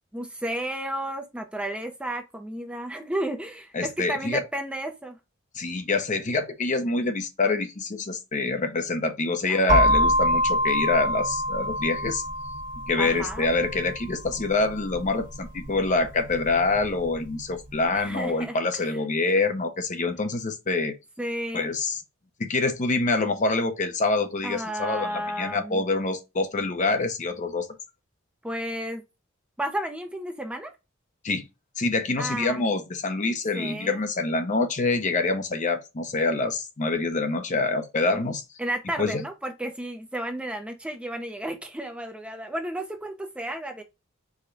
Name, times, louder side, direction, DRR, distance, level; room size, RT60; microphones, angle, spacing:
voice 1, 0.1-5.2 9.5-10.2 13.0-13.5 17.9-19.0 21.2-21.7 24.4-25.8 28.4-29.0 29.6-30.7 32.2-32.6 33.5-34.0 38.6-43.8, right 1 dB, 5° right, 0.5 m, -33 dB
voice 2, 3.7-4.4 5.5-12.2 12.9-20.9 21.5-22.0 22.4-27.7 31.2-31.5 31.8-38.4 39.0-39.2, left 3 dB, 35° left, 0.7 m, -26 dB
sound 1, 9.7-17.5, equal, 45° right, 1.3 m, -26 dB
4.9 x 2.2 x 3.8 m
head